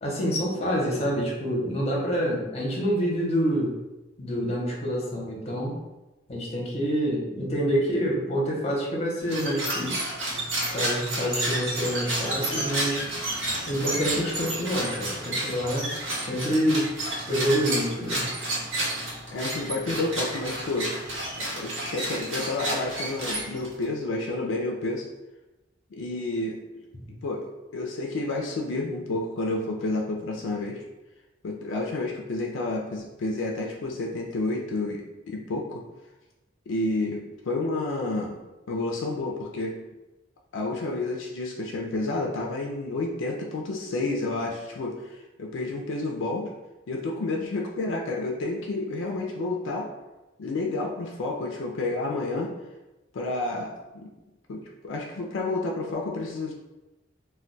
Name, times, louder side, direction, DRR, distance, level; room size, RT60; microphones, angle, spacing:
voice 1, 0.0-3.8 4.2-5.8 6.3-10.1 10.7-13.0 13.7-15.9 16.2-16.9 17.3-18.2 26.9-27.1, equal, 35° left, -3 dB, 0.7 m, -27 dB
sound 1, 9.2-23.8, right 1 dB, 75° right, 0.8 m, -31 dB
voice 2, 19.3-20.9 21.4-25.1 25.9-26.6 27.2-27.5 27.7-30.8 31.4-35.8 36.7-38.4 38.7-39.8 40.5-46.5 46.9-49.9 50.4-52.5 53.1-54.1 54.5-56.5, left 2 dB, 75° left, 0 dB, 0.4 m, -30 dB
2.2 x 2.2 x 3.8 m, 1.0 s
head